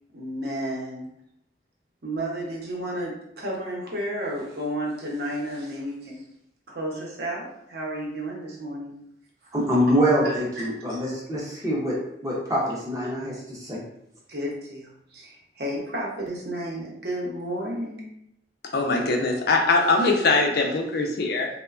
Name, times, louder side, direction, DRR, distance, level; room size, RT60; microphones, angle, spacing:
voice 1, 0.1-1.1 2.0-6.2 6.7-9.0 9.4-9.5 10.2-10.7 14.3-18.1, right 1 dB, 60° right, -2 dB, 0.7 m, -32 dB
voice 2, 9.5-12.0 12.2-13.8, equal, 20° right, -5 dB, 0.5 m, -24 dB
voice 3, 18.7-21.5, left 3 dB, 55° left, 2 dB, 0.4 m, -22 dB
3.0 x 2.1 x 2.3 m, 0.76 s
head